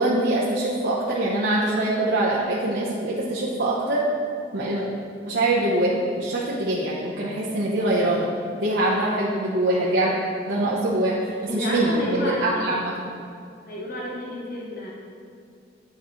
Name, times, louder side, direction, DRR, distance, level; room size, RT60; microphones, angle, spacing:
voice 1, 0.0-4.0 4.5-4.9 5.3-8.3 8.6-10.1 10.5-12.9, right 1 dB, 70° right, -7 dB, 0.9 m, -23 dB
voice 2, 11.5-12.8 13.7-14.9, equal, 50° left, -4 dB, 1.1 m, -30 dB
9.5 x 4.9 x 3.1 m, 2.3 s
head